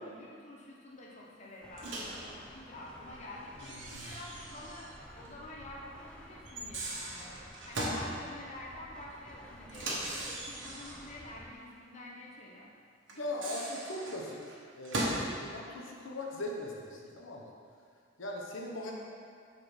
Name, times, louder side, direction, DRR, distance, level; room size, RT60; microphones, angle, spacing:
voice 1, 0.0-12.7, left 1 dB, 35° left, -3 dB, 0.7 m, -48 dB
sound 1, 1.6-11.5, equal, 5° left, 0.4 m, -53 dB
Microwave oven, 1.8-2.2 3.6-5.0 5.2-5.3 6.5-8.1 9.7-11.1 13.1-15.3, right 1 dB, 70° right, 1.3 m, -38 dB
voice 2, 3.7-4.1 13.1-14.4 14.7-17.5 18.2-18.9, left 1 dB, 75° left, -1 dB, 0.9 m, -40 dB
5.1 x 4.3 x 6.0 m, 2.2 s
head